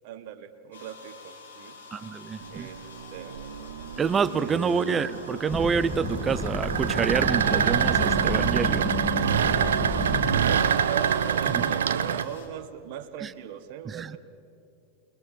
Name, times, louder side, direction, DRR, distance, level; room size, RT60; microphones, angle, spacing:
voice 1, 0.0-1.8 2.5-2.8 3.1-3.4 4.4-5.0 10.1-14.2, right 10 dB, 50° right, 1.5 m, -40 dB
sound 1, 0.7-12.5, left 4 dB, 65° left, 5.5 m, -48 dB
voice 2, 1.9-2.7 4.0-9.0 11.5-11.7 13.2-13.3 13.9-14.2, right 6 dB, 20° right, 0.7 m, -27 dB
sound 2, 2.4-12.2, right 8 dB, 65° right, 0.8 m, -26 dB
sound 3, 5.5-10.6, left 1 dB, 10° left, 2.0 m, -31 dB
28.5 x 21.5 x 4.9 m
figure-of-eight pair, 90°, 0 cm